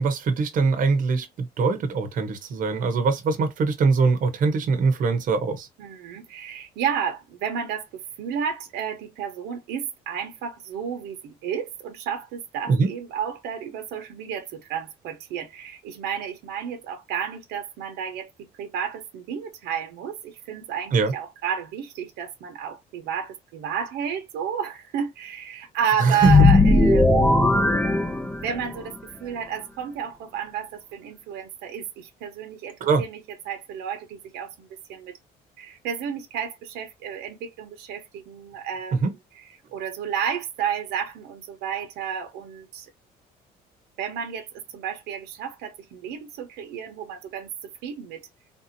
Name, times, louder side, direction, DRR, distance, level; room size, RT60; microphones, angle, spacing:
voice 1, 0.0-5.7 12.7-12.9 20.9-21.1 26.0-26.3 32.8-33.0 38.9-39.1, right 4 dB, 55° right, 0.9 m, -22 dB
voice 2, 5.8-27.5 28.4-35.2 35.6-39.0 39.4-42.9 44.0-48.3, right 8 dB, 85° right, 1.0 m, -32 dB
sound 1, 26.2-28.7, left 2 dB, 10° left, 0.5 m, -17 dB
3.6 x 2.7 x 2.6 m
cardioid pair, 110°, 17 cm